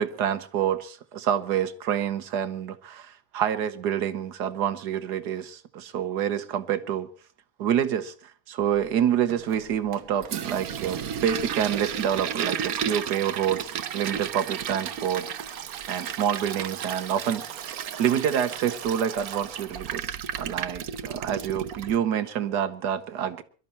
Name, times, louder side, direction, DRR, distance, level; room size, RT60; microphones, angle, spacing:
voice 1, 0.0-7.1 7.6-15.6 15.9-17.4 18.0-23.4, right 9 dB, 85° right, 1.5 m, -27 dB
Toilet flush, 9.3-22.0, right 8 dB, 65° right, 1.3 m, -33 dB
23.0 x 12.5 x 4.2 m
omnidirectional pair, 1.7 m